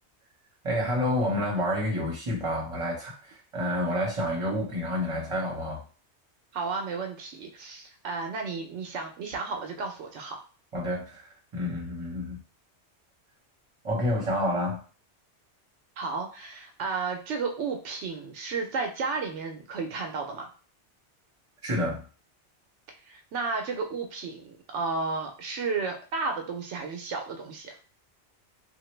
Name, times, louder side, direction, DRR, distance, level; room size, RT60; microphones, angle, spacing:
voice 1, 0.6-5.8 10.7-12.4 13.8-14.8 21.6-22.0, left 1 dB, 30° right, -3 dB, 1.2 m, -29 dB
voice 2, 6.5-10.4 16.0-20.5 23.0-27.7, right 4 dB, 85° right, 3 dB, 1.0 m, -33 dB
2.8 x 2.5 x 3.2 m, 0.36 s
omnidirectional pair, 1.2 m